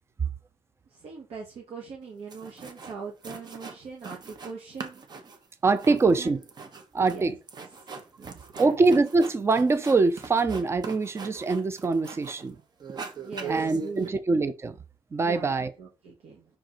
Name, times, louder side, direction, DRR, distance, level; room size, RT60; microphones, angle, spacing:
voice 1, 0.9-5.0 5.9-6.3 7.0-7.4 7.8-8.7 13.2-14.2 15.2-16.4, right 5 dB, 70° right, 1.6 m, -41 dB
sound 1, 2.0-2.1 2.3-3.0 3.2-4.5 4.8-12.5 12.8-14.1, right 5 dB, 40° right, 1.1 m, -41 dB
voice 2, 5.6-6.4 6.9-7.3 8.6-12.6 13.5-14.7 15.1-15.7, right 3 dB, 25° right, 0.6 m, -23 dB
5.9 x 4.8 x 3.9 m
cardioid pair, 140°, 10 cm